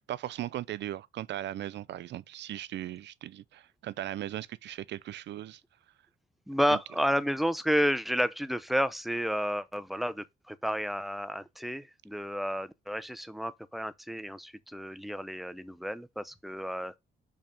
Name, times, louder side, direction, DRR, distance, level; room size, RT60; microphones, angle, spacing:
voice 1, 0.1-5.6 6.7-6.8, right 13 dB, 65° right, 0.4 m, -38 dB
voice 2, 6.5-16.9, equal, ahead, 0.6 m, -31 dB
5.3 x 3.5 x 5.2 m
cardioid pair, 90°, 20 cm